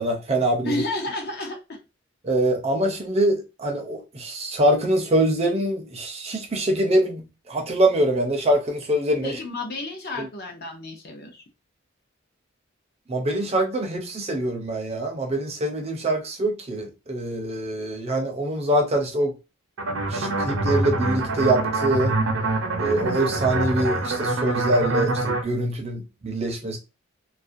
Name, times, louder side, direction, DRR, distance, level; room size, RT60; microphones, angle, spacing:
voice 1, 0.0-0.8 2.2-9.4 10.2-10.3 13.1-19.3 20.1-22.2 22.8-26.8, right 1 dB, 30° right, 0.5 m, -24 dB
voice 2, 0.6-1.8 9.2-11.4, left 2 dB, 50° left, 0.6 m, -31 dB
sound 1, 19.8-25.4, right 2 dB, 70° right, 0.6 m, -25 dB
2.4 x 2.1 x 2.5 m
head